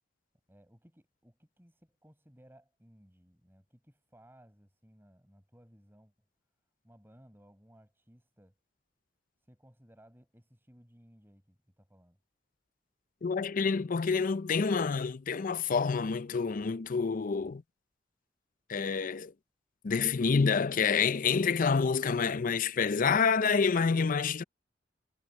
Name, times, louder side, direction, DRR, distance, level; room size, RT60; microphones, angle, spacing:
voice 1, 0.5-6.1 6.8-8.6 9.4-12.2, equal, 10° right, 7.2 m, -60 dB
voice 2, 13.2-17.6 18.7-19.3 19.8-24.4, left 5 dB, 45° left, 0.5 m, -28 dB
head